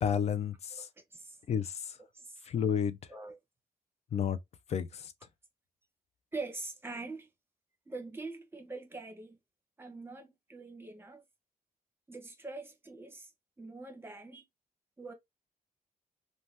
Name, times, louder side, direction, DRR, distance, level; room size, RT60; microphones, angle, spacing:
voice 1, 0.0-0.9 1.5-2.0 2.4-3.0 4.1-4.4 4.7-5.1, left 8 dB, 45° left, 0.4 m, -31 dB
voice 2, 0.8-1.4 2.1-2.4 3.1-3.4 6.3-7.3 7.9-9.4 9.8-11.2 12.1-13.3 13.6-14.4 15.0-15.1, right 3 dB, 15° right, 0.8 m, -43 dB
2.7 x 2.2 x 3.2 m
cardioid pair, 135°, 15 cm